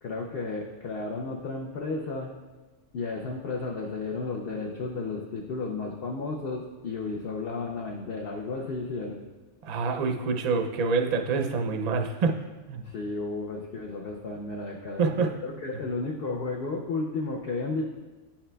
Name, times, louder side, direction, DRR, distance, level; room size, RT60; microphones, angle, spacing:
voice 1, 0.0-2.3 2.9-9.3 12.8-17.9, left 3 dB, 60° left, 0 dB, 0.7 m, -33 dB
voice 2, 9.6-12.4 12.7-12.9 15.0-15.3, right 4 dB, 50° right, 4 dB, 0.5 m, -26 dB
9.9 x 5.8 x 2.2 m, 1.2 s
omnidirectional pair, 1.3 m